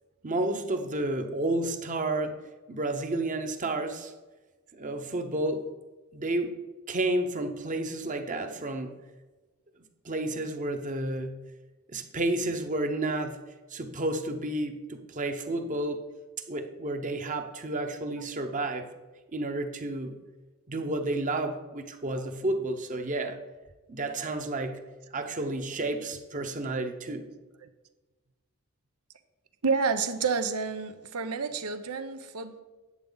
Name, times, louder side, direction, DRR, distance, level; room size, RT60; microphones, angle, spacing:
voice 1, 0.2-2.3 2.7-4.1 4.7-5.7 6.1-6.5 6.9-8.9 10.0-11.4 11.9-13.4 13.7-16.1 16.5-18.9 19.3-20.2 20.7-23.4 23.9-24.8 25.1-27.3, right 2 dB, 35° right, 6 dB, 0.9 m, -31 dB
voice 2, 29.6-32.6, right 5 dB, 90° right, 10 dB, 0.9 m, -30 dB
11.0 x 8.5 x 4.0 m, 1.2 s
head